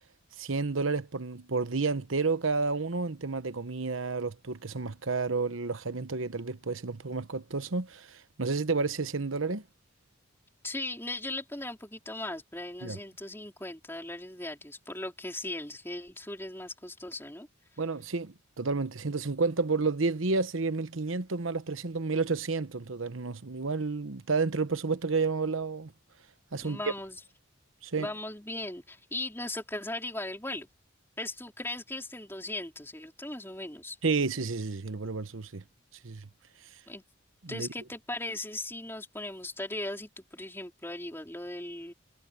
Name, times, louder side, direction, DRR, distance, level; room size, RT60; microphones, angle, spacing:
voice 1, 0.4-9.6 12.8-13.0 17.8-25.9 26.5-26.8 27.8-28.1 34.0-35.6 36.0-36.3 37.4-37.7, right 4 dB, 85° right, 1.1 m, -31 dB
voice 2, 10.6-17.5 26.6-27.2 28.0-30.7 31.2-34.0 36.9-37.0 37.5-41.9, left 2 dB, 10° left, 4.1 m, -38 dB
head